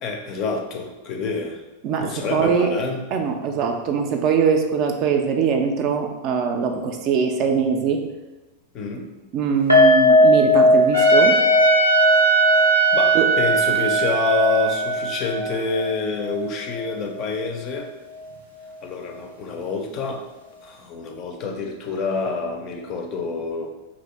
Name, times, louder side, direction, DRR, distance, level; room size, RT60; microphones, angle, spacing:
voice 1, 0.0-1.6 2.0-3.0 8.7-9.1 12.9-17.9 18.8-20.2 20.6-23.7, left 4 dB, 35° left, 2 dB, 0.4 m, -27 dB
voice 2, 1.8-2.7 3.1-8.0 9.3-11.4 13.1-13.2, right 6 dB, 40° right, 4 dB, 0.3 m, -22 dB
sound 1, 9.7-16.9 17.2-17.4 17.7-17.8, left 1 dB, 90° right, 0.6 m, -19 dB
Trumpet, 10.9-16.1, right 5 dB, 80° left, 0.6 m, -21 dB
2.6 x 2.1 x 3.1 m, 1.1 s
figure-of-eight pair, 90°, 0 cm